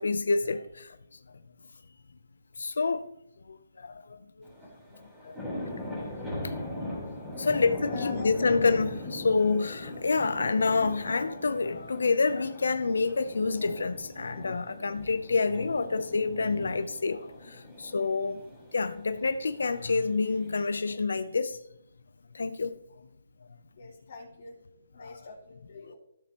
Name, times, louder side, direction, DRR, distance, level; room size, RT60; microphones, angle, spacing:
voice 1, 0.0-1.4 2.6-3.1 3.4-4.5 5.2-6.1 6.4-6.5 7.4-18.4 18.7-21.6 22.3-22.7 25.0-25.3, left 4 dB, 85° left, 0.6 m, -28 dB
sound 1, 4.4-20.8, left 1 dB, 5° right, 3.9 m, -40 dB
voice 2, 7.3-8.5 23.8-24.6 24.9-26.0, left 3 dB, 45° left, 2.7 m, -45 dB
15.5 x 6.9 x 3.0 m
hypercardioid pair, 165°, 0 cm